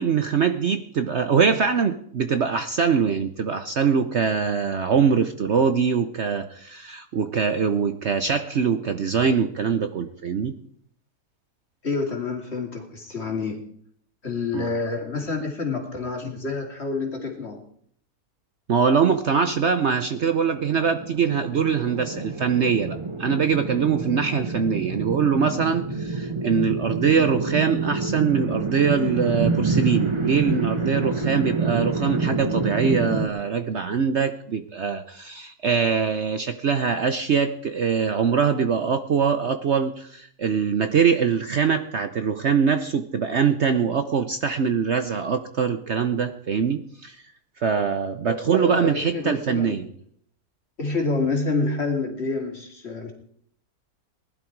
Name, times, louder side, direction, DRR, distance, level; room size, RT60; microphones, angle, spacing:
voice 1, 0.0-10.5 14.5-14.7 18.7-47.2 47.6-49.9, right 6 dB, 55° right, 9 dB, 1.0 m, -23 dB
voice 2, 11.8-13.6 14.2-17.6 48.3-49.9 50.8-53.1, left 3 dB, 40° left, 2 dB, 2.9 m, -28 dB
sound 1, 20.0-33.3, right 3 dB, 20° right, 1.2 m, -27 dB
19.5 x 11.5 x 4.7 m, 0.64 s
omnidirectional pair, 1.7 m